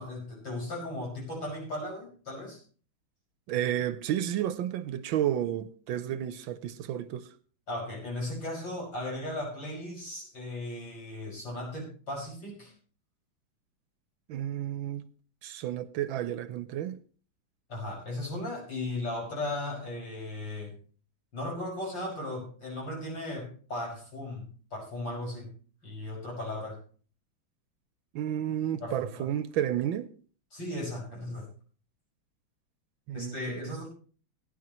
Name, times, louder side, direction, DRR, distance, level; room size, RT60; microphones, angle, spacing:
voice 1, 0.0-2.6 7.7-12.7 17.7-20.7 21.3-25.5 25.8-26.8 28.8-29.3 30.5-31.5 33.1-33.9, left 1 dB, 60° left, 6.6 m, -36 dB
voice 2, 3.5-7.3 14.3-15.0 15.4-17.0 28.1-30.1 33.1-33.8, right 11 dB, 75° right, 1.4 m, -31 dB
18.0 x 11.0 x 3.0 m
omnidirectional pair, 2.3 m